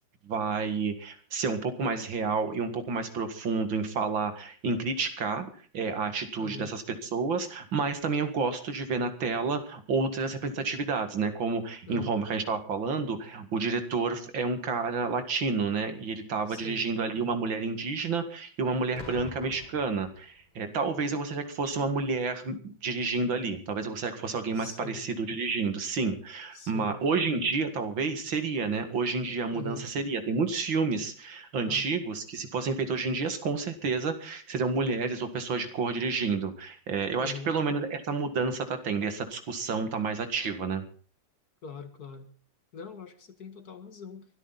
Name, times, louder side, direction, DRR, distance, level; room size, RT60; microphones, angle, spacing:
voice 1, 0.3-5.5 5.7-40.8, right 4 dB, 85° right, 8 dB, 2.8 m, -30 dB
voice 2, 6.4-6.7 11.9-12.1 16.5-16.9 18.9-19.3 24.5-25.0 26.5-26.9 29.5-29.9 31.6-31.9 37.2-37.5 41.6-42.3 42.7-44.3, left 5 dB, 55° left, 9 dB, 2.3 m, -42 dB
Boom, 19.0-20.7 21.6-21.8, left 1 dB, 20° left, 2.3 m, -45 dB
22.5 x 13.0 x 4.1 m, 0.41 s
omnidirectional pair, 2.1 m